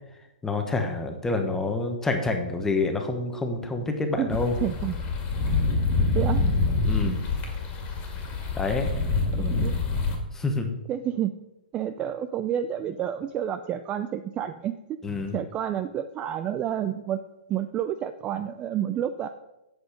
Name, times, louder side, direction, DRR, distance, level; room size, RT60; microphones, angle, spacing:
voice 1, 0.4-4.5 6.4-6.5 6.8-7.2 8.5-8.9 10.3-10.8 15.0-15.3, left 3 dB, 10° left, 5 dB, 1.2 m, -27 dB
voice 2, 4.2-5.0 6.1-6.5 9.4-9.8 10.9-11.4 11.7-15.0 15.3-17.2 17.5-19.3, right 10 dB, 20° right, 10 dB, 0.4 m, -29 dB
sound 1, 4.3-10.2, left 3 dB, 25° left, 2.1 m, -26 dB
7.9 x 7.9 x 5.1 m, 0.94 s
hypercardioid pair, 145°, 5 cm